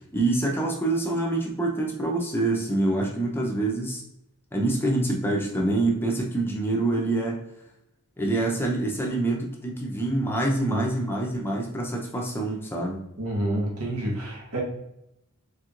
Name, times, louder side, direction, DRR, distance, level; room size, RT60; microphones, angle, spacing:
voice 1, 0.1-4.0 4.5-7.4 8.2-13.0, right 2 dB, 10° left, -1 dB, 0.6 m, -26 dB
voice 2, 13.2-14.6, right 1 dB, 85° right, -2 dB, 1.3 m, -28 dB
4.5 x 3.3 x 2.5 m, 0.82 s
head